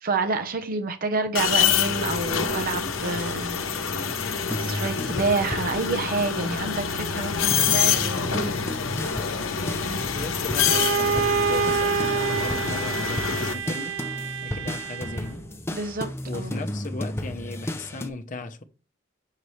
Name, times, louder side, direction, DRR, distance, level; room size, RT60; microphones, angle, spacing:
voice 1, 0.0-4.1 4.5-8.5 15.7-16.6, right 3 dB, 45° right, 0.8 m, -28 dB
sound 1, 1.4-13.5, left 7 dB, 90° left, 0.9 m, -26 dB
sound 2, 2.7-3.4 3.7-6.3 6.7-18.1, left 1 dB, 15° left, 0.6 m, -35 dB
voice 2, 10.1-12.0 12.3-14.0 14.4-15.4 16.3-18.6, left 2 dB, 40° left, 0.9 m, -36 dB
Bowed string instrument, 10.6-15.4, right 6 dB, 80° right, 0.4 m, -27 dB
6.7 x 5.6 x 3.2 m
head